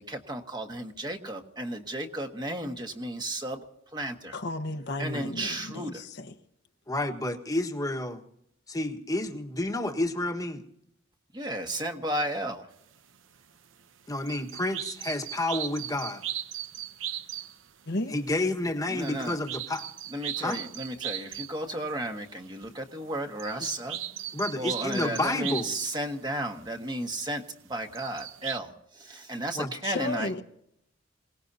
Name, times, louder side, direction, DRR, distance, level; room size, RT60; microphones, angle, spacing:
voice 1, 0.0-3.6 3.9-4.3 5.0-6.0 11.3-12.7 18.9-19.4 20.1-24.0 24.6-27.4 27.7-30.3, right 1 dB, 20° right, 1.5 m, -33 dB
voice 2, 4.3-6.3 17.9-18.2 29.8-30.4, left 2 dB, 60° left, 1.1 m, -33 dB
voice 3, 6.9-8.2 8.7-10.6 14.1-16.2 18.1-19.8 20.4-20.6 24.3-25.7 29.5-29.7, left 2 dB, 20° left, 1.4 m, -30 dB
sound 1, 13.8-13.9 14.3-17.6 18.9-21.7 21.9-22.7 23.0-26.1 27.0-27.1 27.9-28.6, right 11 dB, 75° right, 0.8 m, -38 dB
26.5 x 18.5 x 2.7 m
head